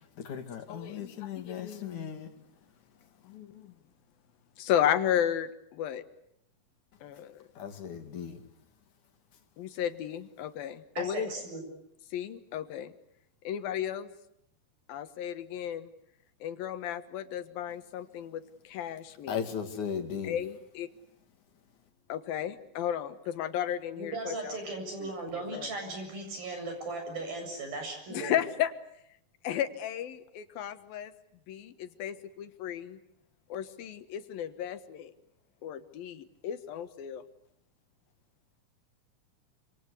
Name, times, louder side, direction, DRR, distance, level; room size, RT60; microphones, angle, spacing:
voice 1, 0.2-2.3 7.6-8.4 19.3-20.4, left 7 dB, 60° left, 3.7 m, -37 dB
voice 2, 0.7-2.1 3.3-3.7 4.6-6.0 7.0-7.5 9.6-11.3 12.1-12.9 13.5-14.1 14.9-15.9 16.4-19.4 20.2-20.9 22.1-24.6 25.0-25.7 28.1-28.7 29.4-31.1 31.5-33.0 33.5-35.1 35.6-37.2, left 10 dB, 90° left, 3.3 m, -34 dB
voice 3, 11.0-11.6 24.0-28.4, right 2 dB, 85° right, 9.3 m, -37 dB
27.0 x 26.5 x 8.4 m
omnidirectional pair, 4.0 m